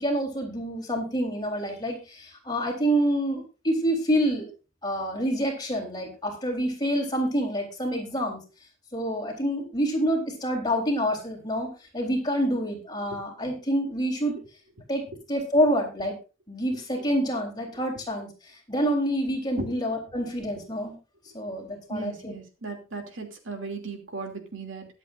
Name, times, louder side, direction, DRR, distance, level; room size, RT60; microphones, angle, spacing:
voice 1, 0.0-4.5 4.8-8.4 8.9-14.4 14.9-16.2 16.5-20.9 21.3-22.3, equal, 20° left, 0 dB, 3.8 m, -27 dB
voice 2, 21.9-24.9, right 3 dB, 65° right, 3 dB, 2.9 m, -36 dB
22.5 x 8.1 x 2.6 m, 0.32 s
head